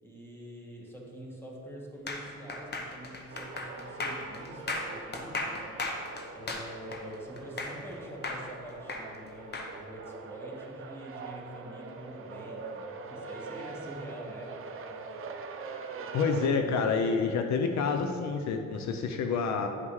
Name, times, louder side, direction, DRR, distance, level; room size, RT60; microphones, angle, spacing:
voice 1, 0.0-5.7 6.3-14.6, equal, 10° left, -2 dB, 1.4 m, -45 dB
sound 1, 2.1-7.9 8.2-9.7, left 2 dB, 35° left, 0.9 m, -36 dB
sound 2, 3.3-16.5, right 4 dB, 45° right, 0.6 m, -43 dB
voice 2, 16.1-19.7, left 5 dB, 65° left, 5 dB, 0.5 m, -28 dB
9.5 x 5.4 x 3.1 m, 2.8 s
cardioid pair, 90°, 30 cm